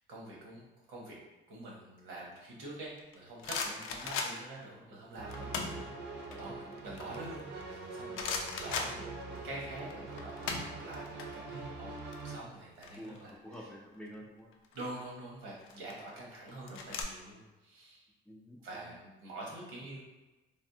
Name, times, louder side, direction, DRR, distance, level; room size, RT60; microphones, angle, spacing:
voice 1, 0.1-1.2 1.5-5.9 6.4-9.1 9.4-13.7 14.7-18.0 18.6-20.0, right 2 dB, 90° right, -4 dB, 1.0 m, -46 dB
sound 1, 3.0-4.6 5.3-5.8 6.2-7.8 8.1-9.5 9.8-11.2 11.5-11.7 12.0-13.5 14.5-14.9 15.6-17.0, left 5 dB, 85° left, 0.4 m, -38 dB
sound 2, 5.2-12.4, right 3 dB, 60° right, 0.6 m, -44 dB
voice 2, 5.7-6.0 6.3-6.9 13.0-14.5 18.3-18.9, equal, 5° left, -2 dB, 0.4 m, -50 dB
3.3 x 2.0 x 2.7 m, 1.1 s
cardioid pair, 120°, 20 cm